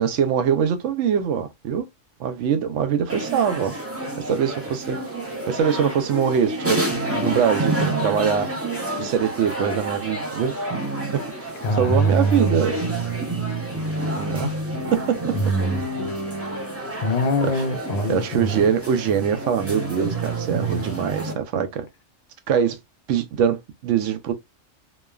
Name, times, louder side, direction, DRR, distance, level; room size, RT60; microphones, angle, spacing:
voice 1, 0.0-1.9 2.2-3.7 4.3-5.0 5.5-6.9 7.2-8.5 9.0-10.5 11.7-12.8 14.2-14.5 14.9-15.2 17.4-17.6 18.1-21.8 22.5-22.8 23.1-24.3, right 7 dB, 75° right, 0.9 m, -23 dB
sound 1, 3.1-21.3, right 2 dB, 20° right, 0.4 m, -29 dB
voice 2, 11.6-12.6 15.3-15.8 17.0-18.6, right 1 dB, 60° left, 0.4 m, -23 dB
3.1 x 2.2 x 2.3 m
omnidirectional pair, 1.3 m